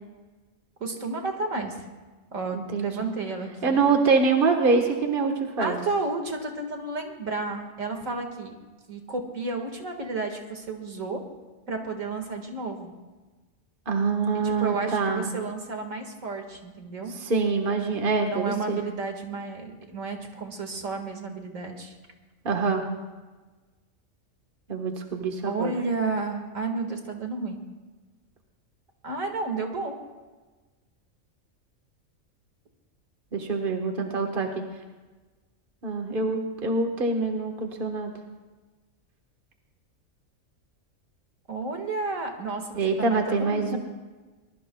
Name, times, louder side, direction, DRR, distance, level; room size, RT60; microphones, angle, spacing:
voice 1, 0.8-1.8 2.3-3.9 5.6-8.5 8.9-11.2 11.7-12.9 14.4-17.1 18.3-22.0 25.5-27.6 29.0-30.0 41.5-43.8, right 3 dB, 75° right, 4 dB, 2.2 m, -32 dB
voice 2, 2.5-2.9 3.6-5.8 13.9-15.2 17.2-18.8 22.4-22.8 24.7-25.7 33.3-34.5 35.8-38.1 42.7-43.8, right 4 dB, 40° right, 3 dB, 1.5 m, -25 dB
23.5 x 21.0 x 2.3 m, 1.3 s
omnidirectional pair, 1.4 m